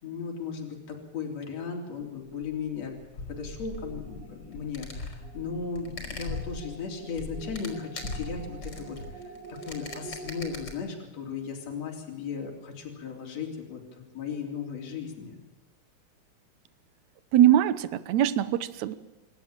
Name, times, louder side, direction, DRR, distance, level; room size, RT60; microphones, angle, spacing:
voice 1, 0.0-3.0 3.3-9.2 9.5-15.4, left 5 dB, 60° left, 1 dB, 4.6 m, -36 dB
sound 1, 2.1-10.7, left 3 dB, 35° left, 5.5 m, -40 dB
sound 2, 3.8-10.6, right 3 dB, 55° right, 6.7 m, -47 dB
voice 2, 17.3-19.0, right 11 dB, 75° right, 14 dB, 2.2 m, -22 dB
27.0 x 13.0 x 8.8 m, 1.1 s
omnidirectional pair, 3.4 m